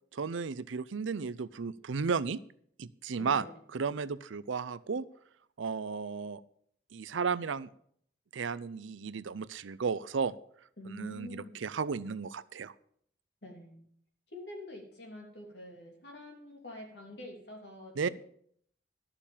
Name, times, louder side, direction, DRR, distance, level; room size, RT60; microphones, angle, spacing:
voice 1, 0.1-2.4 2.8-3.4 3.7-5.0 5.6-6.4 6.9-7.7 8.3-10.4 10.9-12.7 18.0-18.1, right 5 dB, 90° right, 17 dB, 0.5 m, -34 dB
voice 2, 3.2-3.6 10.8-11.5 13.4-13.9 14.3-18.1, left 1 dB, 60° left, 1 dB, 3.0 m, -46 dB
11.5 x 6.9 x 7.1 m, 0.65 s
head